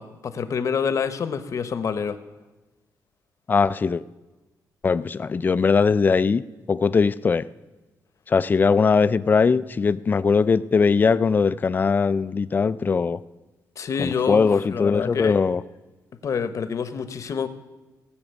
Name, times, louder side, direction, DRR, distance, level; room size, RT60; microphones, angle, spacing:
voice 1, 0.0-2.2 13.8-15.4 16.2-17.5, left 6 dB, 50° left, 12 dB, 0.8 m, -27 dB
voice 2, 3.5-4.0 4.8-6.4 6.7-7.4 8.3-13.2 14.0-15.6, left 5 dB, 25° left, 16 dB, 0.3 m, -20 dB
16.0 x 6.1 x 8.2 m, 1.1 s
wide cardioid pair, 155°, 7 cm